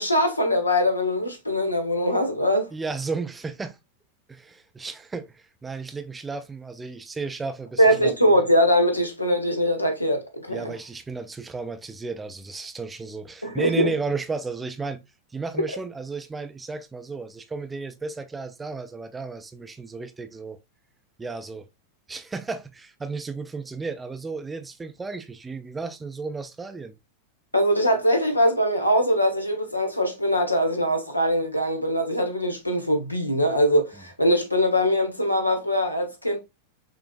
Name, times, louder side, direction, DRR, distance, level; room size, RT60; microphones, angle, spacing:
voice 1, 0.0-2.7 7.8-10.7 13.4-13.9 27.5-36.4, equal, 85° left, 1.0 m, -22 dB
voice 2, 2.7-3.8 4.3-8.4 10.5-15.0 15.3-20.6 21.2-21.7 22.1-27.0, right 4 dB, 15° right, 0.5 m, -33 dB
6.2 x 2.9 x 2.4 m
figure-of-eight pair, 90°, 0 cm